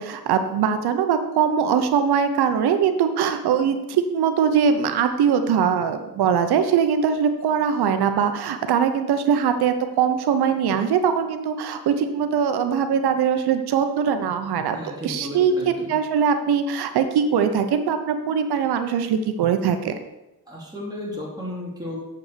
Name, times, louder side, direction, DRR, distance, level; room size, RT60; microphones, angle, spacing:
voice 1, 0.0-14.8 15.0-19.9, right 7 dB, 80° right, 8 dB, 1.0 m, -21 dB
voice 2, 14.7-15.9 20.5-22.0, left 1 dB, 10° right, -4 dB, 3.0 m, -34 dB
7.9 x 5.9 x 6.8 m, 0.95 s
cardioid pair, 110°, 38 cm